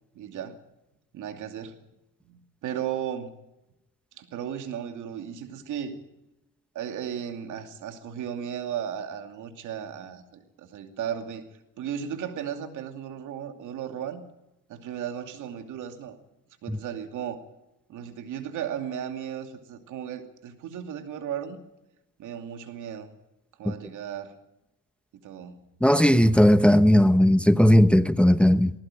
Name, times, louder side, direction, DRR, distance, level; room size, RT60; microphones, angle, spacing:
voice 1, 0.1-0.6 1.1-1.8 2.2-3.3 4.2-6.0 6.7-11.5 11.8-14.2 14.7-16.2 16.6-17.4 17.9-21.6 22.2-23.1 23.6-24.3 25.2-25.6, right 9 dB, 85° right, 2.6 m, -35 dB
voice 2, 25.8-28.7, equal, 5° left, 0.9 m, -17 dB
19.5 x 16.5 x 9.1 m
cardioid pair, 90°, 30 cm